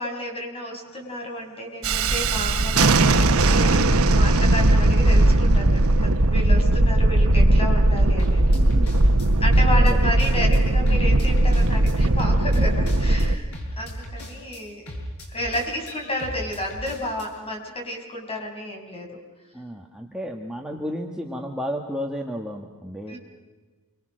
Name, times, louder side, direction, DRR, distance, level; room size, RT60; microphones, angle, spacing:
voice 1, 0.0-8.5 9.4-14.8 15.3-19.2 23.1-23.2, left 1 dB, 25° left, 1 dB, 6.1 m, -31 dB
sound 1, 0.9-1.1 8.2-10.6 10.9-17.3, equal, 75° left, 7.2 m, -36 dB
Thunderstorm, 1.8-13.3, right 1 dB, 70° right, 1.2 m, -18 dB
voice 2, 8.5-8.9 9.8-10.0 19.5-23.2, equal, 5° right, 0 dB, 1.7 m, -32 dB
28.0 x 25.0 x 6.5 m, 1.3 s
head